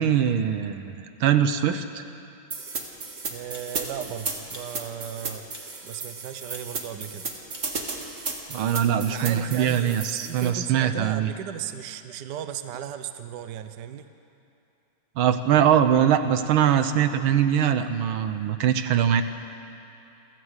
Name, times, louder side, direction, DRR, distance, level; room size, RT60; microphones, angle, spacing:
voice 1, 0.0-2.0 8.5-11.3 15.2-19.2, right 9 dB, 80° right, 10 dB, 1.7 m, -22 dB
sound 1, 2.5-10.5, right 4 dB, 40° right, 1.9 m, -34 dB
voice 2, 3.3-5.5 5.8-7.3 9.1-14.1, right 10 dB, 65° right, 10 dB, 1.3 m, -36 dB
sound 2, 3.5-3.7 4.5-4.7 5.5-5.7 6.5-6.7 7.5-7.7, left 1 dB, 10° left, 1.5 m, -47 dB
28.5 x 11.0 x 8.1 m, 2.8 s
omnidirectional pair, 2.2 m